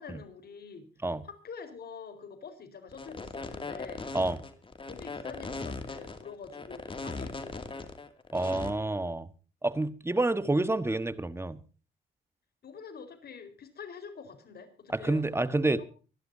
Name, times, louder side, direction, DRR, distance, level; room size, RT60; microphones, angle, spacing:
voice 1, 0.0-0.9 1.2-4.1 4.9-7.7 12.6-15.2 15.5-15.8, left 5 dB, 55° left, 4.5 m, -46 dB
sound 1, 2.9-8.7, left 3 dB, 25° left, 2.5 m, -39 dB
voice 2, 8.3-9.3 9.6-11.6 15.0-15.8, right 2 dB, 10° right, 1.4 m, -28 dB
24.5 x 11.5 x 2.7 m
cardioid pair, 90°, 20 cm